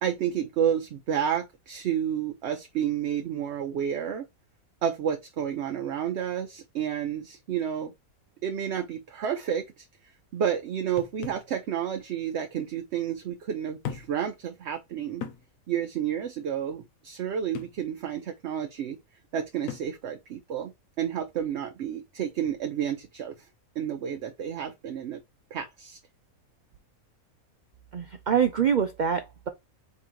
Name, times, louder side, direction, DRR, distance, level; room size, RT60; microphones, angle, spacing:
voice 1, 0.0-4.2 4.8-7.9 8.4-9.9 10.3-15.2 15.7-19.0 19.3-23.5 23.8-25.2 25.5-26.0, right 9 dB, 65° right, 0.7 m, -30 dB
sound 1, 11.0-11.5 12.6-12.7 13.8-14.3 14.7-14.8 15.2-15.5 17.5-17.8 19.7-20.0, left 8 dB, 75° left, 1.1 m, -38 dB
voice 2, 27.9-29.5, right 7 dB, 80° right, 0.4 m, -25 dB
3.8 x 3.0 x 4.4 m
omnidirectional pair, 1.5 m